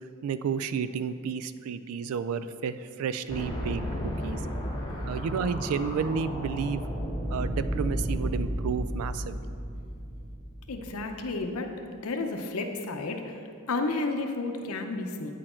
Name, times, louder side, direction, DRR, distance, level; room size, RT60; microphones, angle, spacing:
voice 1, 0.2-4.4 5.1-6.8 7.3-9.4, right 6 dB, 90° right, 14 dB, 0.3 m, -31 dB
sound 1, 3.3-11.3, equal, 20° left, 1.0 m, -33 dB
voice 2, 10.7-15.3, left 3 dB, 90° left, 5 dB, 0.6 m, -32 dB
8.9 x 4.4 x 4.3 m, 2.4 s
head